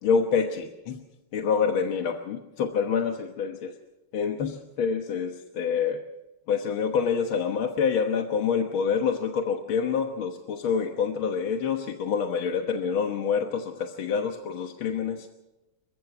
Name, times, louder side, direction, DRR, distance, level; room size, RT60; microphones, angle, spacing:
voice 1, 0.0-1.0 1.3-3.7 4.1-6.0 6.5-15.3, left 6 dB, 80° left, 4 dB, 2.1 m, -27 dB
29.0 x 15.5 x 6.0 m, 1.0 s
omnidirectional pair, 2.2 m